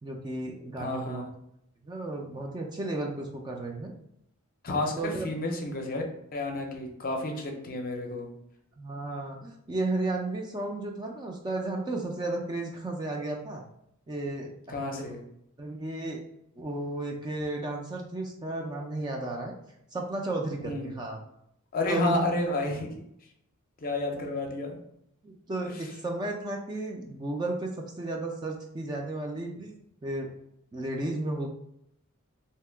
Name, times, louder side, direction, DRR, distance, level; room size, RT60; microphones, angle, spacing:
voice 1, 0.0-1.3 1.8-3.9 5.0-5.3 8.8-13.6 14.1-15.1 15.6-16.2 16.6-19.5 19.9-21.2 21.9-22.2 25.2-27.7 28.0-29.7 30.0-30.3 30.7-31.5, right 2 dB, 20° right, 1 dB, 0.3 m, -33 dB
voice 2, 0.8-1.3 4.6-6.0 6.3-8.3 14.7-15.2 20.6-21.0 21.7-22.9 23.8-24.8 25.7-25.8, left 2 dB, 45° left, 2 dB, 0.5 m, -31 dB
2.7 x 2.2 x 3.3 m, 0.75 s
head